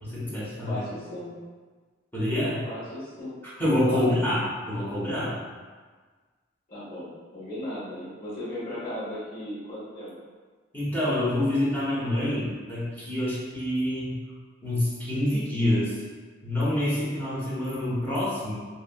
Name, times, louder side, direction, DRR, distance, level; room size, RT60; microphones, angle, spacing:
voice 1, 0.1-0.8 2.1-2.6 3.4-5.3 10.7-14.2 14.6-16.0 16.4-18.5, left 1 dB, 10° left, -10 dB, 0.9 m, -27 dB
voice 2, 0.7-1.3 2.6-3.4 3.9-4.2 6.7-10.1, left 1 dB, 45° left, -10 dB, 1.2 m, -36 dB
3.1 x 2.6 x 2.2 m, 1.4 s
head